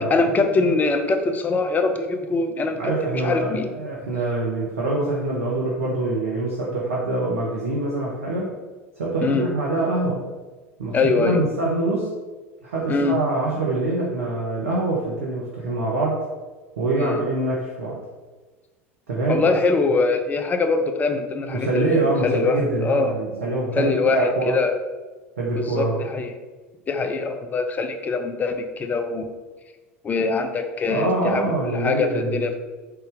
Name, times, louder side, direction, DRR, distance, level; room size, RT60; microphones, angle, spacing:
voice 1, 0.0-3.7 9.2-9.4 10.9-11.4 12.9-13.2 17.0-17.2 19.3-23.2 23.8-24.7 25.5-26.3 26.9-29.3 30.0-31.4 31.7-32.6, left 3 dB, 25° left, 7 dB, 0.5 m, -23 dB
voice 2, 2.8-8.6 9.0-10.2 10.8-12.1 12.6-16.2 16.8-18.0 19.1-19.5 21.5-24.6 25.4-26.0 30.9-32.4, right 2 dB, 75° right, -4 dB, 0.8 m, -24 dB
3.9 x 3.4 x 3.8 m, 1.3 s
figure-of-eight pair, 70°, 7 cm